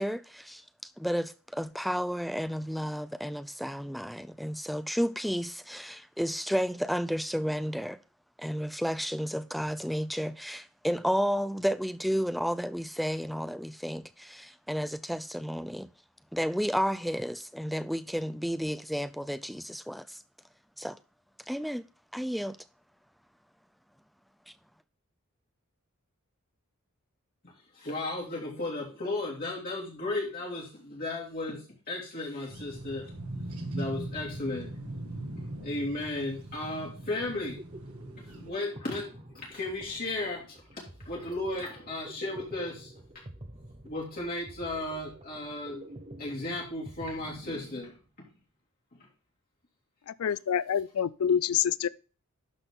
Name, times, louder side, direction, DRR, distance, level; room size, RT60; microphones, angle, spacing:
voice 1, 0.0-8.0 8.4-15.9 16.3-20.2 20.8-21.0 21.5-21.8 22.1-22.6, equal, ahead, 0.4 m, -32 dB
voice 2, 27.7-31.6 31.9-33.1 33.7-34.7 35.4-37.6 38.3-39.1 39.3-40.8 41.0-42.9 43.8-45.8 46.2-48.0, left 2 dB, 45° left, 2.5 m, -35 dB
sound 1, 32.5-38.5, right 1 dB, 85° right, 1.5 m, -40 dB
sound 2, 37.6-48.1, right 1 dB, 30° right, 1.0 m, -49 dB
voice 3, 50.2-51.9, left 8 dB, 75° left, 0.4 m, -27 dB
11.5 x 4.1 x 3.5 m
head